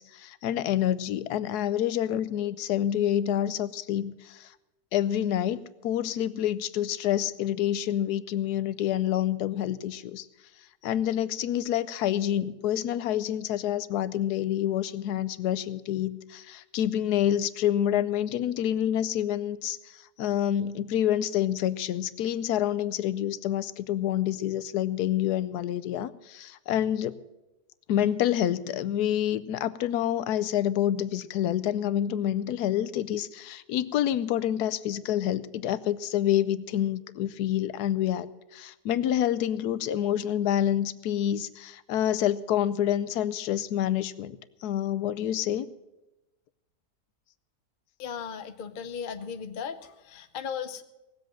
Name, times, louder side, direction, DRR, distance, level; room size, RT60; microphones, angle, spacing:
voice 1, 0.0-4.5 4.9-10.3 10.8-27.2 27.9-38.3 38.5-45.7, left 11 dB, 75° left, 16 dB, 1.2 m, -27 dB
voice 2, 48.0-50.8, left 7 dB, 50° left, 9 dB, 0.6 m, -36 dB
18.0 x 7.9 x 7.6 m, 0.98 s
omnidirectional pair, 1.8 m